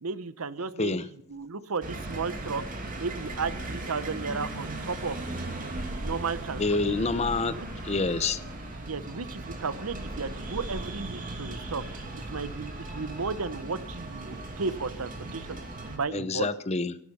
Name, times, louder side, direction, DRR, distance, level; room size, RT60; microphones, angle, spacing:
voice 1, 0.0-2.6 3.0-5.7 6.0-7.0 7.6-7.7 8.8-11.8 12.2-15.6 15.9-16.5, right 4 dB, 75° right, 16 dB, 0.8 m, -34 dB
sound 1, 1.8-16.0, right 2 dB, 40° right, 2.7 m, -37 dB
voice 2, 6.6-7.5 7.8-8.4 16.1-17.0, left 3 dB, 30° left, 13 dB, 0.7 m, -27 dB
17.0 x 11.0 x 5.5 m, 0.69 s
head